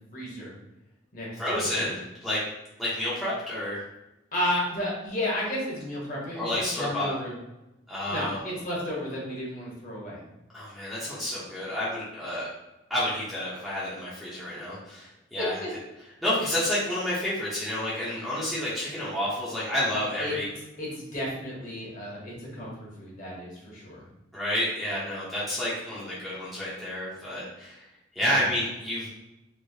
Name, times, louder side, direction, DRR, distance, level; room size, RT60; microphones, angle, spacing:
voice 1, 0.1-0.5 1.1-1.7 4.3-7.3 8.1-10.2 20.2-20.3 20.8-24.0 28.2-28.4, left 1 dB, 45° left, -5 dB, 1.1 m, -33 dB
voice 2, 1.4-2.4 2.8-3.8 6.3-7.1 7.9-8.5 10.5-12.5 12.9-15.6 16.2-20.5 24.3-27.8 28.2-29.1, left 1 dB, ahead, -9 dB, 0.8 m, -30 dB
3.2 x 2.8 x 2.8 m, 0.95 s
head